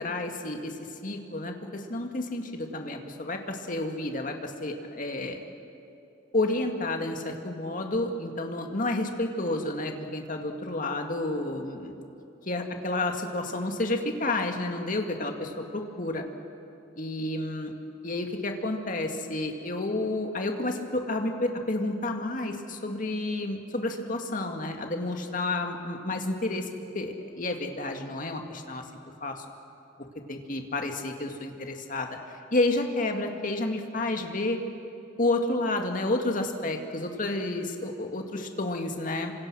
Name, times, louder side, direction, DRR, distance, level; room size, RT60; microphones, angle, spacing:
voice 1, 0.0-5.4 6.3-12.0 12.5-16.2 17.0-17.7 18.0-28.8 29.2-29.4 30.3-34.6 35.2-39.3, left 2 dB, 45° left, 4 dB, 2.1 m, -30 dB
27.0 x 25.5 x 6.2 m, 2.8 s
head